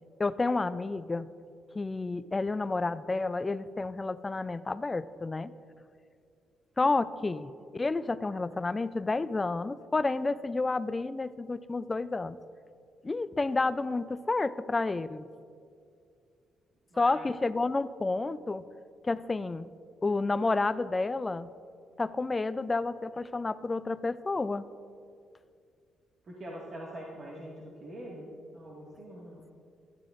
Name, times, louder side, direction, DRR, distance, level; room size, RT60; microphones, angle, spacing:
voice 1, 0.2-1.3 1.7-5.5 6.8-12.4 13.0-15.3 17.0-18.6 19.0-19.7 20.0-21.5 22.0-24.6, left 3 dB, 25° left, 15 dB, 0.3 m, -30 dB
voice 2, 16.9-17.3 26.3-29.5, right 1 dB, 50° right, -4 dB, 1.8 m, -44 dB
15.5 x 12.0 x 2.5 m, 2.3 s
cardioid pair, 90°, 0 cm